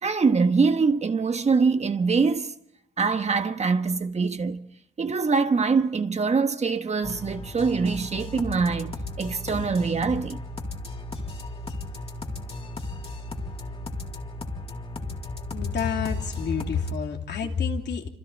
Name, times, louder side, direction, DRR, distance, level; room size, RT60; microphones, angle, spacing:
voice 1, 0.0-2.5 3.0-4.6 5.0-10.4, right 4 dB, 35° right, 1.4 m, -24 dB
sound 1, 7.0-16.9, left 2 dB, 30° left, 3.6 m, -35 dB
voice 2, 15.5-18.1, left 6 dB, 60° left, 3.1 m, -28 dB
27.0 x 26.5 x 4.2 m
cardioid pair, 90°, 20 cm